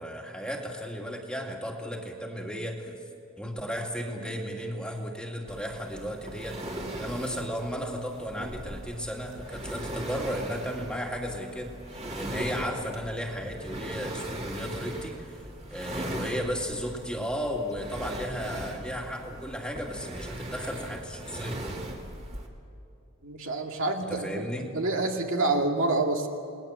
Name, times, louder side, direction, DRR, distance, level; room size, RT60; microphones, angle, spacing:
voice 1, 0.0-3.0 3.4-6.6 6.9-11.7 12.1-15.4 15.7-21.6 24.1-24.7, equal, 5° left, 0 dB, 2.4 m, -34 dB
sound 1, 5.5-22.5, right 1 dB, 30° right, 2.6 m, -39 dB
voice 2, 23.2-26.3, right 2 dB, 65° right, 2 dB, 2.2 m, -28 dB
29.5 x 20.0 x 7.5 m, 2.7 s
head